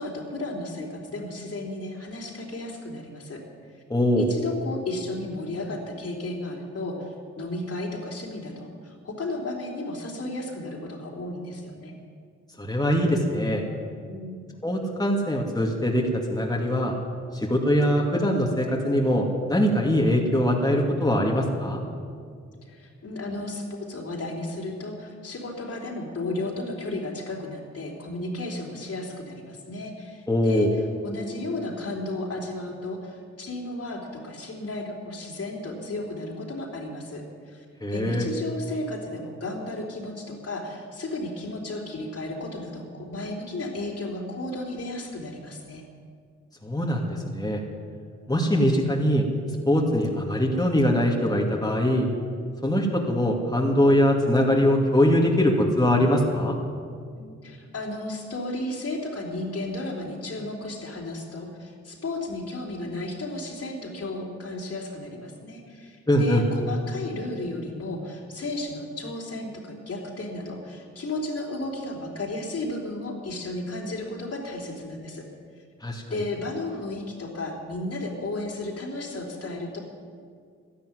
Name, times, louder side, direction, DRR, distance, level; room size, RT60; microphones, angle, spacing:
voice 1, 0.0-3.4 3.7-3.8 4.2-11.9 14.1-14.4 22.6-45.8 57.1-75.3 75.6-75.7 76.1-79.8, left 2 dB, 55° left, -1 dB, 3.6 m, -34 dB
voice 2, 3.9-4.3 12.6-13.6 14.6-16.9 17.3-21.8 30.3-30.7 37.8-38.3 46.6-47.6 48.3-49.3 49.7-52.1 52.6-56.6 66.1-66.4 75.8-76.0, equal, 10° left, -1 dB, 2.4 m, -22 dB
12.0 x 11.5 x 9.5 m, 2.2 s
supercardioid pair, 50°, 30 cm